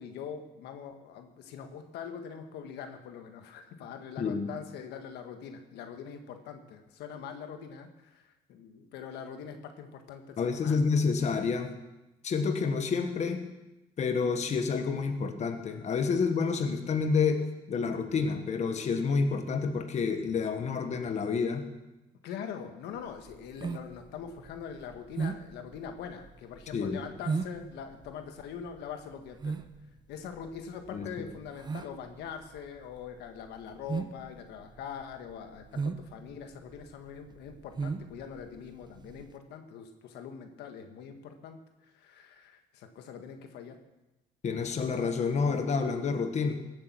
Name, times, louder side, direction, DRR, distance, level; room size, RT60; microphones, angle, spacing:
voice 1, 0.0-10.9 22.2-29.6 30.1-41.6 41.9-43.8, left 7 dB, 80° left, 6 dB, 1.5 m, -43 dB
voice 2, 4.2-4.5 10.4-11.7 12.2-13.5 14.0-21.7 26.7-27.0 30.9-31.1 44.4-46.5, left 5 dB, 45° left, 6 dB, 1.4 m, -29 dB
sound 1, 23.0-39.3, right 4 dB, 25° right, 0.8 m, -38 dB
17.0 x 8.6 x 6.1 m, 0.99 s
cardioid pair, 110°, 17 cm